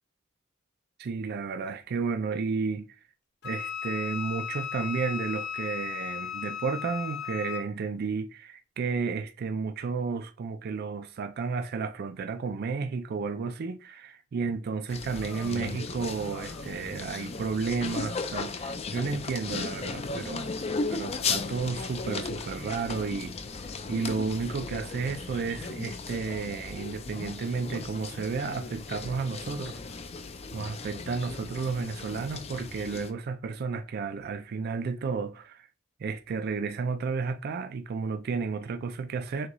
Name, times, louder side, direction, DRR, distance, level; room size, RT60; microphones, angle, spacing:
voice 1, 1.0-2.9 3.4-20.5 20.9-23.4 23.9-29.8 30.5-35.7 36.0-39.5, right 5 dB, 50° right, 0.3 m, -32 dB
Wind instrument woodwind instrument, 3.4-7.7, left 8 dB, 55° left, 0.8 m, -36 dB
sound 1, 14.9-33.1, left 4 dB, 30° left, 0.4 m, -36 dB
sound 2, 15.1-15.7 16.2-17.2 17.9-18.1 19.2-19.3 20.5-21.4 22.3-22.6 23.5-24.0 24.9-25.1, left 1 dB, 80° left, 1.5 m, -52 dB
6.2 x 2.3 x 3.0 m
head